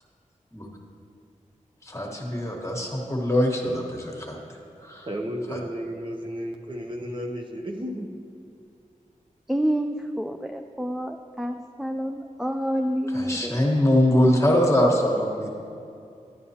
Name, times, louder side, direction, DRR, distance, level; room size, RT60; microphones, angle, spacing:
voice 1, 1.8-4.4 4.8-5.1 5.5-5.6 13.1-15.5, left 1 dB, 20° left, 0 dB, 1.3 m, -23 dB
voice 2, 5.1-8.1, equal, 35° right, 1 dB, 0.7 m, -33 dB
voice 3, 9.5-13.6, equal, 5° right, 4 dB, 0.3 m, -28 dB
11.5 x 9.1 x 2.8 m, 2.5 s
wide cardioid pair, 75°, 14 cm